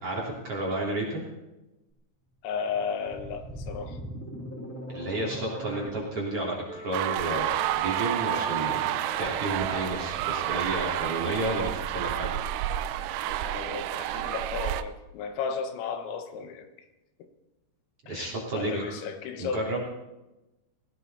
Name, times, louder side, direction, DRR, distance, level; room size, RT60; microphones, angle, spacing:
voice 1, 0.0-1.3 4.9-8.8 9.2-12.3 18.1-18.9 19.4-19.8, right 2 dB, 35° right, -4 dB, 3.6 m, -31 dB
voice 2, 2.4-4.0 13.3-16.7 18.1-19.7, left 6 dB, 85° left, 6 dB, 4.1 m, -34 dB
sound 1, 2.6-5.9, equal, 10° left, 1.0 m, -39 dB
sound 2, 6.7-11.8, right 1 dB, 50° right, 5.0 m, -44 dB
sound 3, 6.9-14.8, right 13 dB, 90° right, 3.4 m, -30 dB
19.5 x 16.5 x 4.2 m, 1.0 s
omnidirectional pair, 5.8 m